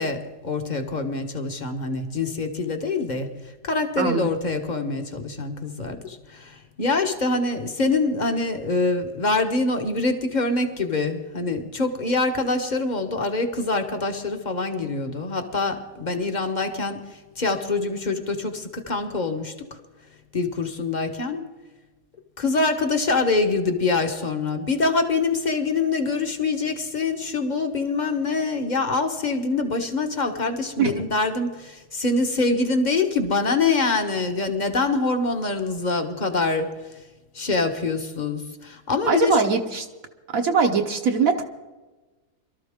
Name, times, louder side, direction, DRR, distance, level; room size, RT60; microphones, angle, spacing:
voice 1, 0.0-19.8 20.3-21.4 22.4-37.0 37.3-39.4, left 3 dB, 30° left, 6 dB, 1.2 m, -25 dB
voice 2, 4.0-4.3 30.8-30.9 39.1-39.9 40.3-41.4, right 5 dB, 60° right, 3 dB, 1.4 m, -21 dB
23.5 x 13.0 x 3.7 m, 1.2 s
omnidirectional pair, 1.7 m